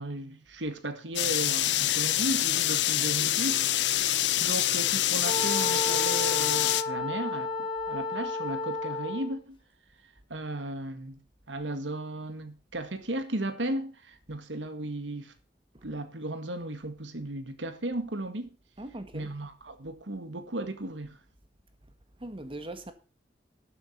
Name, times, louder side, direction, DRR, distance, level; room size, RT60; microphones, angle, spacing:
voice 1, 0.0-3.6 4.2-9.6 10.0-11.2 11.5-15.3 15.8-18.5 19.1-21.2, right 1 dB, 85° right, 1.7 m, -35 dB
sound 1, 1.2-6.8, left 13 dB, 70° left, 0.7 m, -26 dB
Wind instrument woodwind instrument, 5.2-9.4, left 3 dB, 30° left, 3.7 m, -32 dB
voice 2, 18.8-19.3 22.2-22.9, right 1 dB, 30° right, 1.5 m, -40 dB
12.5 x 7.2 x 5.7 m
head